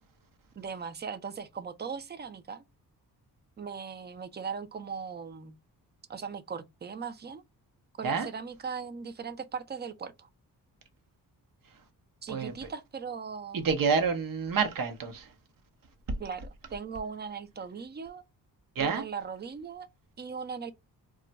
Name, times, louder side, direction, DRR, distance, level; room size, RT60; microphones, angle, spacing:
voice 1, 0.6-2.6 3.6-5.6 6.1-7.4 8.0-10.3 12.2-13.7 16.2-18.2 18.8-19.9 20.2-20.7, right 6 dB, 25° right, 0.5 m, -39 dB
voice 2, 13.5-15.3 18.8-19.0, right 5 dB, 60° right, 0.9 m, -28 dB
2.4 x 2.2 x 3.9 m
cardioid pair, 75°, 38 cm